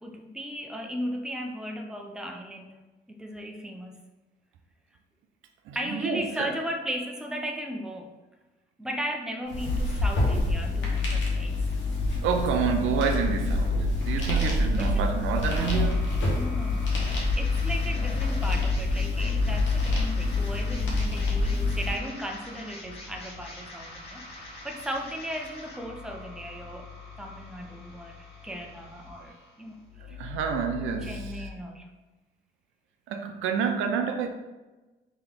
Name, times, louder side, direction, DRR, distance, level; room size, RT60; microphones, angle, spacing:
voice 1, 0.0-2.8 3.1-4.0 5.7-8.1 8.8-11.6 14.8-15.1 15.5-16.0 16.3-26.9 27.2-28.2 28.4-30.2 31.0-31.9, equal, 5° right, 0.5 m, -36 dB
voice 2, 5.7-6.5 12.2-16.0 30.0-31.4 33.1-34.3, right 6 dB, 90° right, 0.5 m, -29 dB
sound 1, 9.5-21.9, left 2 dB, 70° left, 1.2 m, -26 dB
sound 2, 15.5-31.5, left 3 dB, 30° left, 1.4 m, -44 dB
3.7 x 2.9 x 3.5 m
cardioid pair, 90°, 20 cm